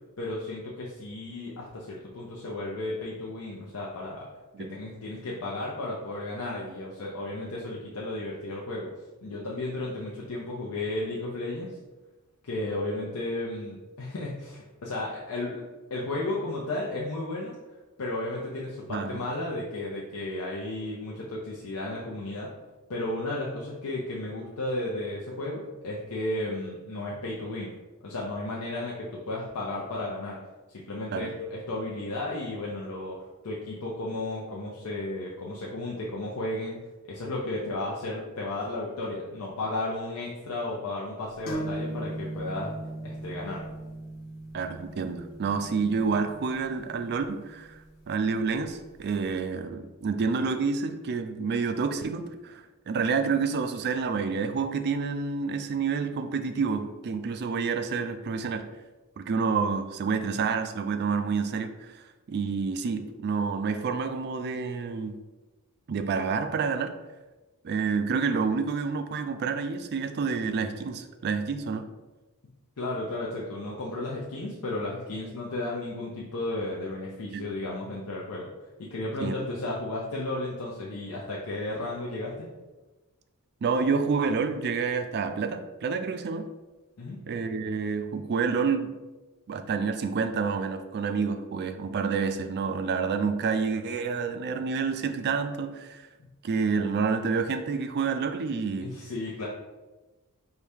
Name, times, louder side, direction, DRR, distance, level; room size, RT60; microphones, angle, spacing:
voice 1, 0.2-4.3 4.6-8.9 9.2-11.7 12.4-15.6 15.9-17.5 18.0-22.5 22.9-27.7 28.0-30.4 30.7-33.2 33.4-36.8 37.0-42.7 43.0-43.6 72.8-78.5 78.8-82.5 87.0-87.2 96.2-96.3 98.8-99.5, left 2 dB, 80° left, -4 dB, 0.6 m, -33 dB
voice 2, 18.9-19.2 31.1-31.3 44.5-47.8 48.1-58.7 59.2-65.2 65.9-66.9 67.6-71.8 77.3-77.4 79.2-79.3 83.6-86.5 87.3-88.9 89.5-96.0 96.4-98.9, right 5 dB, 50° right, 8 dB, 0.4 m, -28 dB
sound 1, 41.5-49.0, right 1 dB, 45° left, 0.9 m, -39 dB
4.6 x 2.7 x 3.4 m, 1.2 s
head